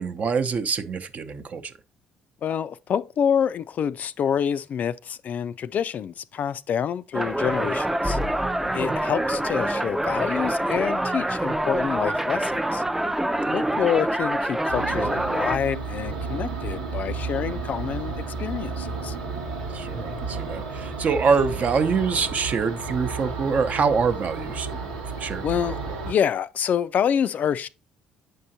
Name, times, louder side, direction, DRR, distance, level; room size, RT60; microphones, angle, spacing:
voice 1, 0.0-1.7 8.6-9.0 13.4-13.8 19.7-24.8 25.2-25.5, right 5 dB, 45° right, 0.8 m, -25 dB
voice 2, 2.4-8.2 8.7-12.8 13.5-18.1 18.4-19.1 25.4-25.8 26.1-27.7, left 8 dB, 50° left, 0.3 m, -27 dB
sound 1, 7.1-15.6, right 1 dB, 10° right, 0.5 m, -25 dB
sound 2, 14.7-26.1, right 4 dB, 80° right, 1.1 m, -32 dB
7.8 x 5.5 x 2.7 m
figure-of-eight pair, 50°, 4 cm